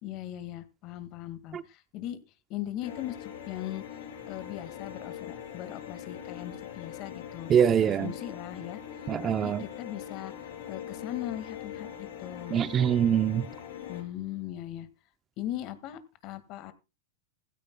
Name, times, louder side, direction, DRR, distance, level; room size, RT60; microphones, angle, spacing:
voice 1, 0.0-2.2 2.5-4.0 4.3-7.5 7.8-12.6 13.9-14.9 15.4-16.7, left 13 dB, 40° left, 1.9 m, -39 dB
sound 1, 2.8-14.0, left 9 dB, 70° left, 6.9 m, -42 dB
voice 2, 7.5-8.1 9.1-9.6 12.5-13.5, right 8 dB, 25° right, 0.6 m, -24 dB
17.0 x 15.5 x 2.2 m
supercardioid pair, 145°, 0 cm